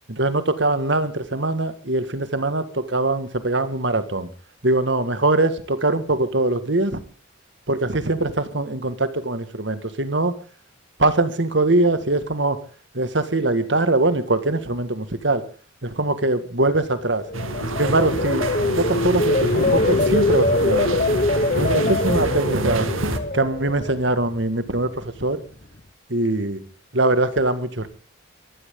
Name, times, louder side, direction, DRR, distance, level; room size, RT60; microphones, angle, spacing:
voice 1, 0.1-4.3 4.6-7.0 7.7-10.4 11.0-12.6 12.9-15.4 15.8-17.3 17.8-18.5 18.7-21.0 21.5-22.9 23.3-25.4 26.1-26.6 26.9-27.9, right 2 dB, 60° right, 1.9 m, -22 dB
sound 1, 17.2-24.3 24.7-25.1, left 2 dB, 40° left, 1.1 m, -23 dB
sound 2, 17.3-23.2, right 2 dB, 85° right, 2.2 m, -28 dB
24.0 x 15.5 x 3.8 m
head